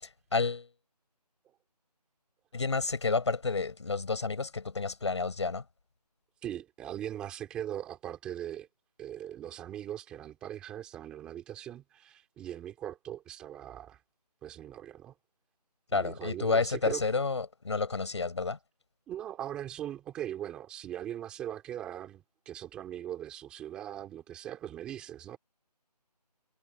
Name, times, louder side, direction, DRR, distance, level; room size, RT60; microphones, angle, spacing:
voice 1, 0.3-0.7 2.5-5.6 15.9-18.6, left 4 dB, 45° left, 6.2 m, -30 dB
voice 2, 6.4-8.7 9.0-14.0 14.4-15.1 15.9-17.0 19.1-25.4, right 11 dB, 5° right, 2.7 m, -40 dB
figure-of-eight pair, 175°, 21 cm